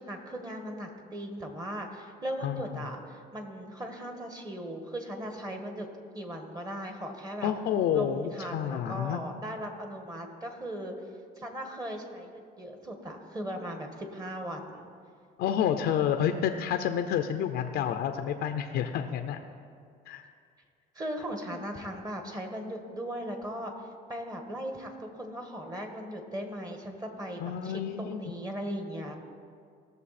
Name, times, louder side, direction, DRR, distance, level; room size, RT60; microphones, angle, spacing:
voice 1, 0.0-5.9 6.1-7.5 7.9-10.9 11.4-14.9 20.9-23.7 24.1-29.2, equal, 20° right, 4 dB, 1.6 m, -38 dB
voice 2, 7.4-9.2 15.4-19.4 20.1-20.2 27.4-28.3, left 9 dB, 75° left, 6 dB, 0.6 m, -29 dB
18.0 x 6.8 x 4.2 m, 2.3 s
cardioid pair, 110°, 17 cm